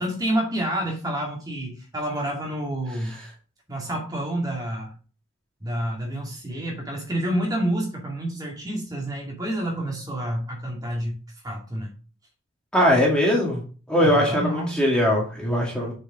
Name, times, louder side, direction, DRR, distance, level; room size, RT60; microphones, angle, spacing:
voice 1, 0.0-3.2 3.7-4.9 5.6-11.1 11.4-11.9 14.0-14.8 15.7-15.9, right 1 dB, 15° right, -1 dB, 2.2 m, -28 dB
voice 2, 12.7-13.6 13.9-15.9, equal, 5° left, -3 dB, 2.1 m, -20 dB
7.1 x 5.2 x 5.0 m, 0.37 s
head